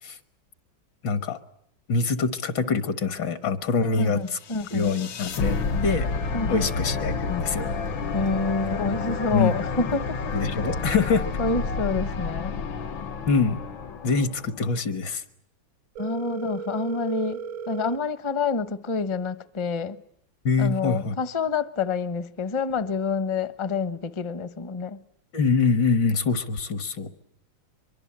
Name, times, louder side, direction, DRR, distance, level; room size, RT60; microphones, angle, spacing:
voice 1, 1.0-1.4 1.9-4.4 4.7-6.1 6.5-7.7 9.3-9.5 10.3-11.3 13.3-13.6 14.0-15.2 20.5-21.2 25.3-27.1, left 4 dB, 70° left, 2.0 m, -24 dB
voice 2, 3.8-4.9 6.3-6.7 8.1-10.2 11.4-12.5 16.0-20.0 20.6-25.0, left 4 dB, 25° left, 0.6 m, -28 dB
sound 1, 4.4-14.6, left 4 dB, 90° left, 2.1 m, -30 dB
Telephone, 16.0-18.0, right 6 dB, 90° right, 2.2 m, -35 dB
24.0 x 24.0 x 8.7 m
omnidirectional pair, 2.1 m